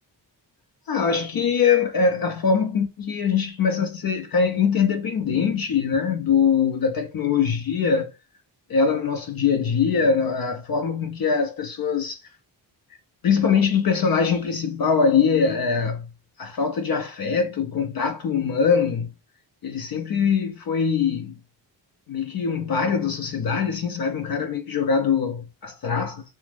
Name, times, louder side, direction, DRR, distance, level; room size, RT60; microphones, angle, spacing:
voice 1, 0.9-8.1 8.7-12.2 13.2-16.1 16.4-19.1 19.6-21.3 22.1-26.2, left 6 dB, 55° left, 0.5 m, -22 dB
2.4 x 2.0 x 3.3 m
wide cardioid pair, 95°, 45 cm